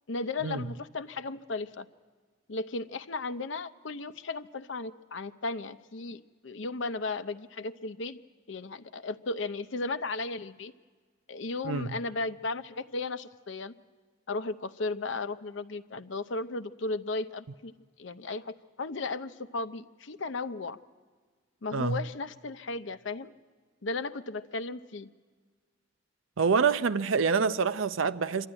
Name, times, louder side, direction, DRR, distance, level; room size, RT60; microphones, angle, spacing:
voice 1, 0.1-1.9 2.5-8.2 8.5-10.7 11.3-13.7 14.3-17.7 18.0-20.8 21.6-23.3 23.8-25.1, left 3 dB, 65° left, 0.7 m, -35 dB
voice 2, 26.4-28.5, right 5 dB, 80° right, 0.6 m, -26 dB
25.5 x 12.5 x 9.8 m
head